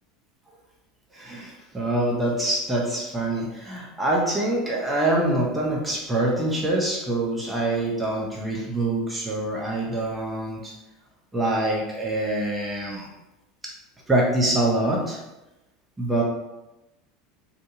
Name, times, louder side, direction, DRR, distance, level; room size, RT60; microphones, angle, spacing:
voice 1, 1.1-10.7 11.3-13.1 13.6-13.7 14.1-15.2 16.0-16.2, right 1 dB, 15° right, -3 dB, 0.6 m, -25 dB
2.8 x 2.2 x 2.7 m, 0.98 s
figure-of-eight pair, 75°, 0 cm